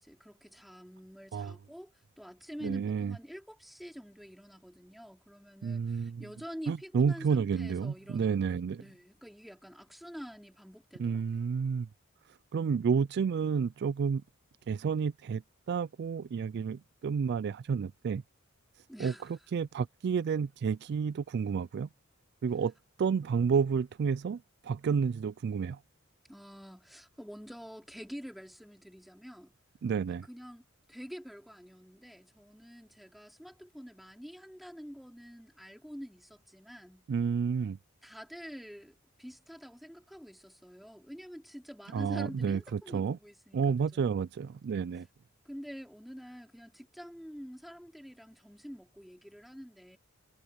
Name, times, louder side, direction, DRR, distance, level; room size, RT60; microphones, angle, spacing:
voice 1, 0.0-8.4 8.8-11.4 18.9-19.4 26.3-29.5 30.1-37.1 38.0-44.0 45.4-50.0, equal, ahead, 3.2 m, -47 dB
voice 2, 2.6-3.2 5.6-6.2 6.7-8.8 11.0-11.9 12.5-14.2 14.7-15.4 15.7-18.2 19.0-19.1 19.5-21.9 22.4-22.7 23.0-25.8 29.8-30.3 37.1-37.8 41.9-43.2 43.5-45.1, right 6 dB, 50° right, 0.3 m, -30 dB
head